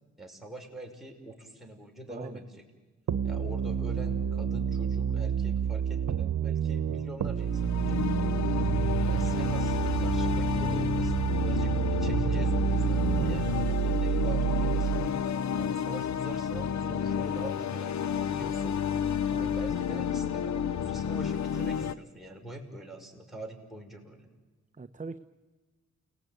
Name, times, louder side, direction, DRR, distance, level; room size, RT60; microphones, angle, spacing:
voice 1, 0.2-2.6 3.2-8.0 9.1-15.1 15.6-18.8 19.4-24.3, right 1 dB, ahead, 0 dB, 6.0 m, -44 dB
voice 2, 2.1-2.4 13.1-13.4 19.3-19.6 24.8-25.2, right 4 dB, 25° right, 9 dB, 1.0 m, -41 dB
sound 1, 3.1-15.1, right 8 dB, 75° right, 1.2 m, -29 dB
sound 2, 7.4-21.9, left 8 dB, 65° left, 0.9 m, -31 dB
29.5 x 18.5 x 9.3 m, 1.3 s
cardioid pair, 65°, 31 cm